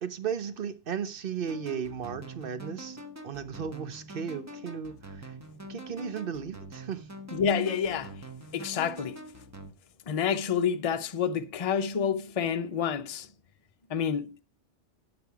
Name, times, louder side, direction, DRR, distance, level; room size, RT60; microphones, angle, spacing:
voice 1, 0.0-5.3 5.7-7.1, right 7 dB, 55° right, 0.9 m, -35 dB
sound 1, 1.5-9.7, right 1 dB, 15° right, 0.9 m, -45 dB
voice 2, 7.3-8.1 8.5-9.2 10.1-13.3 13.9-14.4, left 7 dB, 40° left, 0.6 m, -28 dB
9.8 x 6.9 x 4.7 m
omnidirectional pair, 1.2 m